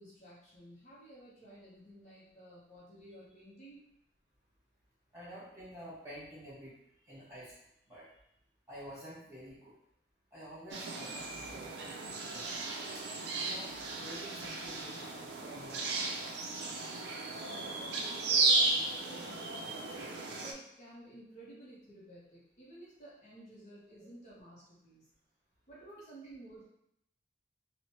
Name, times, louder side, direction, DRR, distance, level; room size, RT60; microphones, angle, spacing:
voice 1, 0.0-3.9 17.3-25.1 25.7-26.7, right 1 dB, 40° left, -7 dB, 0.7 m, -54 dB
voice 2, 5.1-6.7 7.1-7.5 7.9-8.0 8.7-9.7 10.3-11.9 12.3-12.5 12.9-13.0 13.3-13.7 13.9-16.1, equal, 15° right, -10 dB, 1.4 m, -49 dB
sound 1, 10.7-20.5, right 3 dB, 70° right, 0.4 m, -34 dB
3.0 x 2.0 x 2.8 m, 0.75 s
head